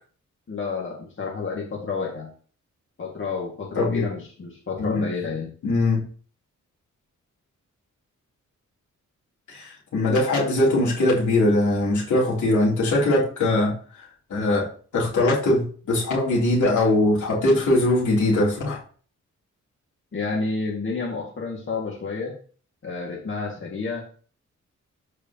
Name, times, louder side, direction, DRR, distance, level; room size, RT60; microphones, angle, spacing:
voice 1, 0.5-2.3 3.0-5.5 20.1-22.3 22.8-24.1, left 4 dB, 40° left, 2.0 m, -30 dB
voice 2, 5.6-6.0 9.5-13.7 14.3-14.7 14.9-18.8, left 2 dB, 75° left, 3.2 m, -21 dB
12.5 x 4.9 x 2.9 m
wide cardioid pair, 115°, 30 cm